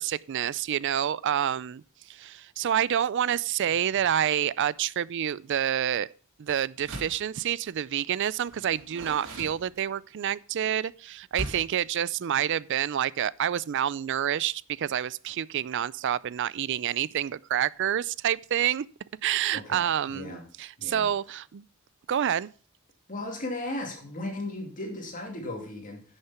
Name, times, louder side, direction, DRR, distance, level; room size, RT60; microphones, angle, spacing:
voice 1, 0.0-1.8 2.1-6.1 6.4-18.9 19.2-21.6 22.1-22.5, right 10 dB, 55° right, 0.4 m, -28 dB
Door, 6.8-7.3 8.5-10.2 11.3-11.8, right 1 dB, 75° right, 2.9 m, -39 dB
voice 2, 19.5-20.4 20.8-21.1 23.1-26.0, left 2 dB, 40° left, 2.5 m, -36 dB
10.5 x 6.6 x 5.7 m
head